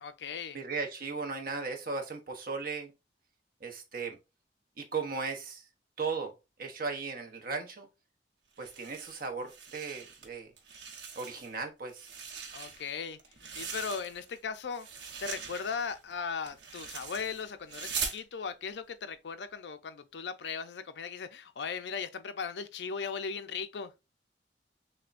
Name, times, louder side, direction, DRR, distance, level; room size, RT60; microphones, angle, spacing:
voice 1, 0.0-0.6 12.5-13.2 13.6-14.9 15.2-23.9, left 5 dB, 75° left, 0.5 m, -38 dB
voice 2, 0.5-2.9 3.6-4.2 4.8-5.6 6.0-6.3 6.6-7.9 8.6-10.5 11.2-12.1, right 4 dB, 55° right, 0.9 m, -36 dB
sound 1, 8.6-10.3 10.6-11.6 11.9-14.4 14.7-18.2, right 5 dB, 80° right, 0.9 m, -41 dB
6.5 x 2.2 x 2.5 m
head